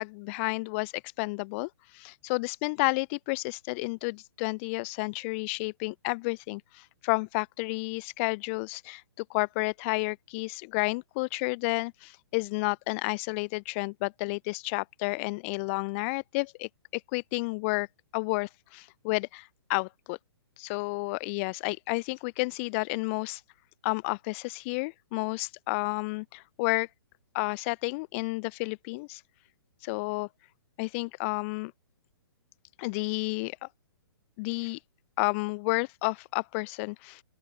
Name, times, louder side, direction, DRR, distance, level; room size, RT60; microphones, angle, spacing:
voice 1, 0.0-17.9 18.1-20.2 20.6-23.4 23.8-26.9 27.3-29.2 29.8-30.3 30.8-31.7 32.8-33.7 34.4-34.8 35.2-37.2, left 28 dB, 30° left, 0.5 m, -31 dB
open air
figure-of-eight pair, 125°, 14 cm